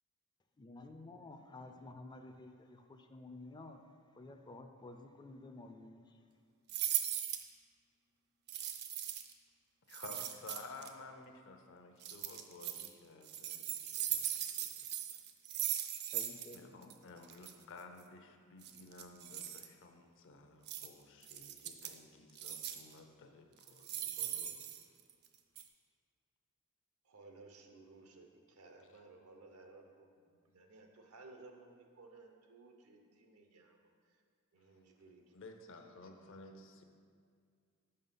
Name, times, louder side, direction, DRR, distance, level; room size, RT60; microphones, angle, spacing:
voice 1, 0.6-3.8 4.2-6.2 16.1-17.0, left 2 dB, 20° left, 6 dB, 0.4 m, -52 dB
sound 1, 6.7-7.5 8.5-9.3 9.9-10.9 12.0-12.9 13.2-16.6 16.8-16.9 17.2-17.5 18.6-19.7 20.7-20.9 21.2-22.0 22.4-22.9 23.6-25.3 25.6-25.7, right 11 dB, 50° right, 0.5 m, -39 dB
voice 2, 9.9-14.4 15.1-15.2 16.5-24.5 28.8-29.0 35.3-36.8, left 3 dB, 60° left, 5 dB, 0.6 m, -54 dB
voice 3, 27.1-30.1 30.4-33.8 34.5-35.2, right 3 dB, 80° right, 3 dB, 0.8 m, -58 dB
5.6 x 5.5 x 5.6 m, 2.1 s
head